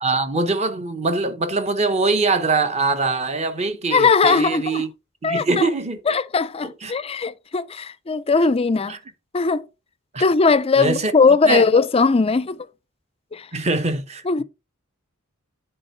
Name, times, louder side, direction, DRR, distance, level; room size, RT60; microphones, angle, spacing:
voice 1, 0.0-4.9 5.2-6.0 6.8-6.9 8.9-9.0 10.1-10.2 10.8-11.1 11.4-11.6 13.5-14.4, right 3 dB, 30° right, 0.9 m, -22 dB
voice 2, 3.9-4.9 5.2-5.7 6.1-9.0 9.3-9.6 10.2-12.6 13.3-13.5 14.3-14.4, left 4 dB, 25° left, 0.4 m, -19 dB
9.8 x 4.5 x 4.5 m
head